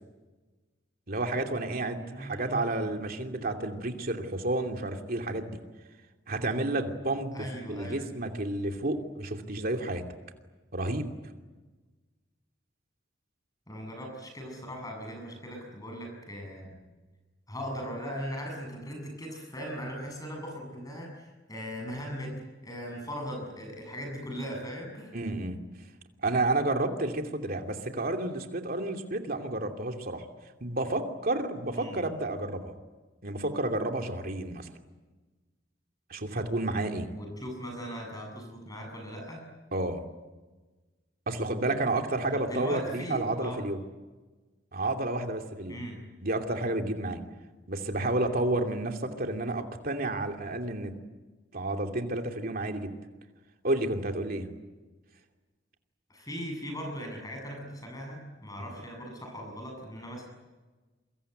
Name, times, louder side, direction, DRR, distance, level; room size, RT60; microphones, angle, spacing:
voice 1, 1.1-5.6 6.3-10.0 10.7-11.1 25.1-25.6 26.2-30.2 30.6-32.7 33.2-34.7 36.1-37.1 39.7-40.0 41.3-43.8 44.7-45.8 46.2-47.2 47.7-50.9 51.5-52.9 53.6-54.5 58.6-58.7, right 2 dB, 50° right, 4 dB, 2.8 m, -31 dB
voice 2, 2.0-2.9 7.3-8.1 13.7-16.7 17.5-22.3 22.6-25.1 31.8-32.0 37.1-39.5 42.3-43.6 45.7-46.0 56.1-60.3, equal, 20° left, 2 dB, 7.6 m, -39 dB
28.0 x 24.0 x 8.1 m, 1.3 s
head